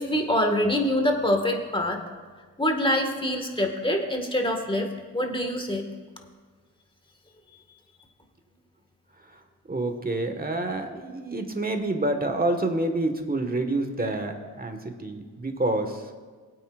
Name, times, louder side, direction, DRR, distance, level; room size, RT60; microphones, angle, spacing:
voice 1, 0.0-2.0 2.6-4.9 5.1-5.8, left 1 dB, 15° left, 3 dB, 1.9 m, -25 dB
voice 2, 9.7-16.0, right 2 dB, 25° right, 5 dB, 1.7 m, -28 dB
20.0 x 8.6 x 2.6 m, 1.5 s
supercardioid pair, 50°, 38 cm